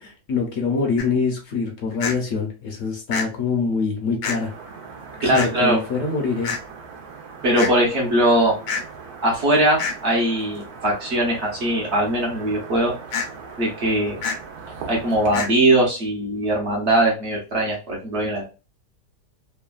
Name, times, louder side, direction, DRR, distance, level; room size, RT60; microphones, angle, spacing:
voice 1, 0.0-4.5 5.2-6.5, left 4 dB, 65° left, 2 dB, 0.9 m, -24 dB
sound 1, 1.0-1.1 2.0-2.2 3.1-3.3 4.2-4.4 5.3-5.5 6.4-6.6 7.6-7.7 8.7-8.8 9.8-10.0 13.1-13.3 14.2-14.4 15.3-15.5, left 5 dB, 85° left, 1.2 m, -26 dB
sound 2, 4.2-15.5, right 5 dB, 85° right, 1.3 m, -40 dB
voice 2, 5.2-5.8 7.4-8.6 9.2-12.9 13.6-14.2 14.9-18.5, right 1 dB, 55° right, -1 dB, 1.0 m, -20 dB
3.2 x 2.2 x 2.2 m, 0.32 s
omnidirectional pair, 1.6 m